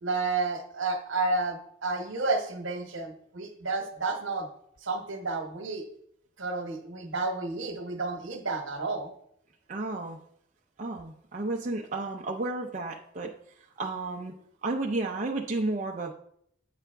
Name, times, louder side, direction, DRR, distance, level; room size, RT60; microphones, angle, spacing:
voice 1, 0.0-4.5 4.8-5.8 6.4-9.1, right 3 dB, 70° right, 5 dB, 1.1 m, -31 dB
voice 2, 9.7-10.2 10.8-13.3 13.8-14.3 14.6-16.1, right 2 dB, 35° right, 0 dB, 0.5 m, -32 dB
8.3 x 4.9 x 3.4 m, 0.69 s
head